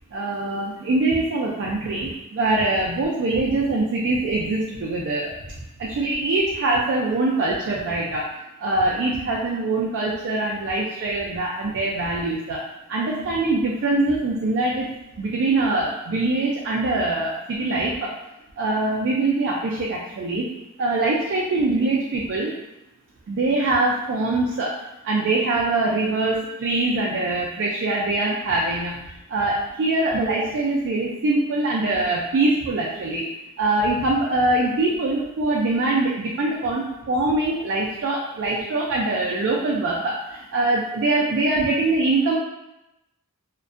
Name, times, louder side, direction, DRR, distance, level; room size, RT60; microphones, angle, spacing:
voice 1, 0.1-5.3 5.8-8.2 8.6-12.6 12.9-14.9 15.2-18.1 18.6-20.5 20.8-22.5 23.3-24.7 25.0-29.0 29.3-33.3 33.6-42.4, right 2 dB, 55° right, -3 dB, 0.3 m, -23 dB
2.4 x 2.2 x 2.4 m, 0.92 s
head